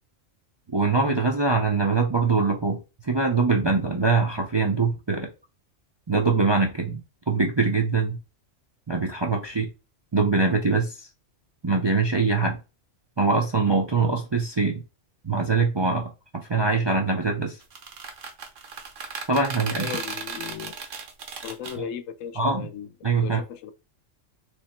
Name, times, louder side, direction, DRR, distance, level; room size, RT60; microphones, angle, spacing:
voice 1, 0.7-5.3 6.1-7.0 7.3-8.2 8.9-9.7 10.1-11.1 11.6-12.6 13.2-14.8 15.2-17.6 19.3-19.9 21.8-21.9 22.4-22.7 23.0-23.4, right 4 dB, 35° right, 0.4 m, -23 dB
sound 1, 17.6-21.8, right 5 dB, 75° right, 1.2 m, -35 dB
voice 2, 19.8-20.7 21.4-22.9 23.2-23.7, left 9 dB, 90° left, 1.0 m, -36 dB
3.4 x 3.1 x 4.2 m
omnidirectional pair, 1.3 m